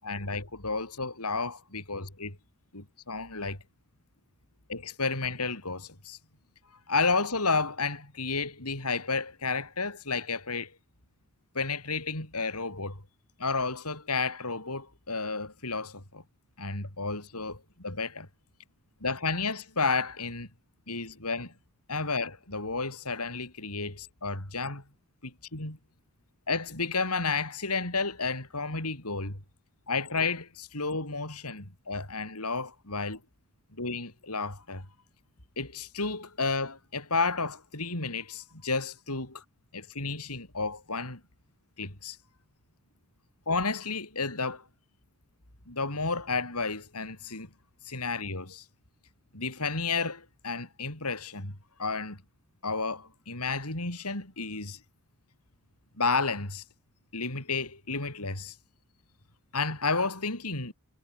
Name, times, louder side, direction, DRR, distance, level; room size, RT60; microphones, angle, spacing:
voice 1, 0.0-2.4 2.7-3.6 4.7-6.2 6.9-10.7 11.5-13.0 13.4-16.2 16.6-18.3 19.0-20.5 20.9-21.5 21.9-24.8 25.2-25.8 26.5-29.4 29.9-33.2 33.8-34.8 35.6-39.4 39.7-41.2 41.8-42.2 43.5-44.6 45.7-47.5 47.8-48.6 49.3-52.2 52.6-54.8 56.0-56.6 57.1-58.5 59.5-60.7, left 4 dB, 90° left, 6.9 m, -32 dB
head